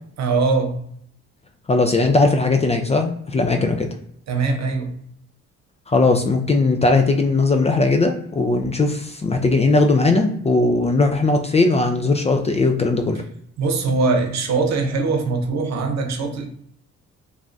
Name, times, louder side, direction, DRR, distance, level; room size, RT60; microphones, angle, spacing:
voice 1, 0.2-0.8 4.3-4.9 13.6-16.5, right 4 dB, 65° right, 0.8 m, -21 dB
voice 2, 1.7-3.9 5.9-13.2, left 3 dB, 20° left, 0.4 m, -18 dB
3.1 x 2.3 x 2.6 m
cardioid pair, 90°, 30 cm